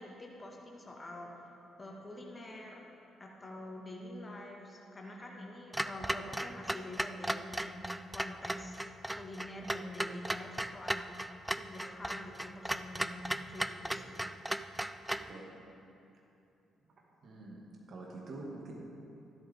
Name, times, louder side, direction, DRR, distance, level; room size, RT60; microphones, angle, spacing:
voice 1, 0.0-2.8 3.2-8.8 9.2-11.1 11.6-14.3, left 1 dB, 25° left, -1 dB, 2.0 m, -46 dB
Clock, 5.7-15.3, right 1 dB, 5° right, 0.4 m, -37 dB
voice 2, 15.1-15.5 17.2-18.7, right 2 dB, 50° right, -2 dB, 2.2 m, -46 dB
13.5 x 11.5 x 3.7 m, 2.8 s
figure-of-eight pair, 40°, 0 cm